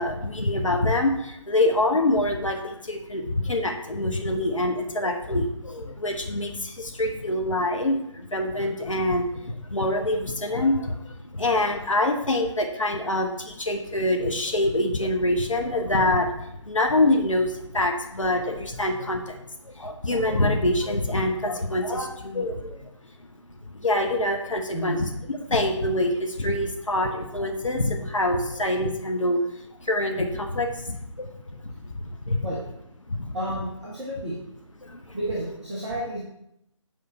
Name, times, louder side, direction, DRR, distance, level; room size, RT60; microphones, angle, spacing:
voice 1, 0.0-19.4 19.6-22.9 23.6-32.5 33.1-33.3 34.8-35.2, left 1 dB, 80° left, 3 dB, 1.1 m, -25 dB
voice 2, 24.7-25.0 32.4-32.6 33.3-34.4 35.1-36.2, right 1 dB, 5° right, -9 dB, 0.4 m, -31 dB
7.9 x 4.9 x 4.4 m, 0.78 s
figure-of-eight pair, 155°, 16 cm